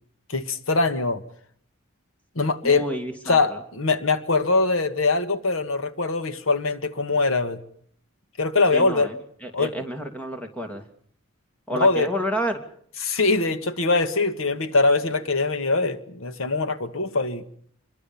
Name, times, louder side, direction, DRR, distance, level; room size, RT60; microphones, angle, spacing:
voice 1, 0.3-1.2 2.4-2.9 3.3-7.6 8.4-9.1 9.5-9.7 11.7-12.1 13.0-17.4, left 3 dB, 75° left, 10 dB, 1.7 m, -22 dB
voice 2, 2.6-3.6 8.7-10.8 11.7-12.6, right 1 dB, 5° left, 5 dB, 2.7 m, -30 dB
26.5 x 22.5 x 7.1 m, 0.64 s
head